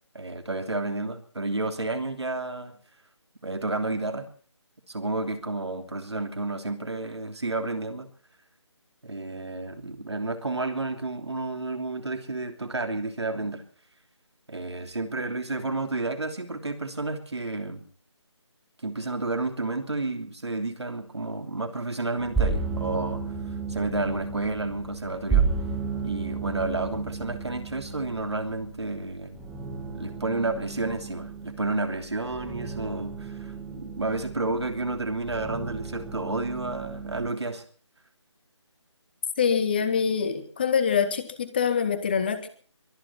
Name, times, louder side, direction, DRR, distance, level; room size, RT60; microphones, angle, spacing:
voice 1, 0.1-2.7 3.4-4.3 4.9-8.1 9.0-13.6 14.5-17.8 18.8-23.2 23.7-25.5 26.0-29.4 29.9-37.6, right 2 dB, 65° right, 8 dB, 3.1 m, -31 dB
sound 1, 22.2-37.3, right 5 dB, ahead, 1.2 m, -33 dB
voice 2, 39.4-42.5, left 6 dB, 20° left, 12 dB, 1.0 m, -25 dB
22.5 x 10.5 x 6.1 m, 0.44 s
figure-of-eight pair, 155°, 15 cm